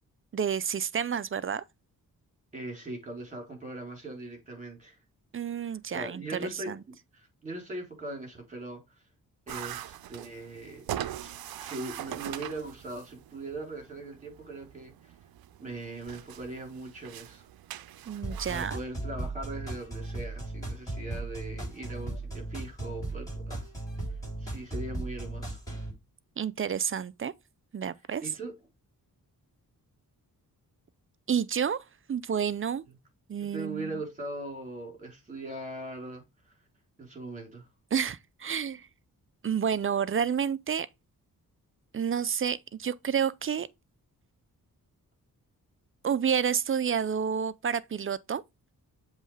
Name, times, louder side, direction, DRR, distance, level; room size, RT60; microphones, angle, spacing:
voice 1, 0.3-1.6 5.3-6.8 18.1-18.8 26.4-27.3 27.7-28.2 31.3-32.8 33.3-34.0 37.9-38.9 39.4-40.9 41.9-43.7 46.0-48.4, right 7 dB, 35° right, 0.5 m, -30 dB
voice 2, 2.5-5.0 5.6-6.8 7.1-8.8 9.5-10.8 11.2-15.1 15.6-17.4 18.5-23.7 24.4-25.6 28.2-28.5 33.5-36.2 37.0-37.7, right 2 dB, 20° right, 3.8 m, -40 dB
sound 1, 9.5-18.7, right 12 dB, 85° right, 0.6 m, -42 dB
sound 2, 18.2-25.9, right 2 dB, 10° left, 3.9 m, -36 dB
7.5 x 3.2 x 4.8 m
cardioid pair, 80°, 35 cm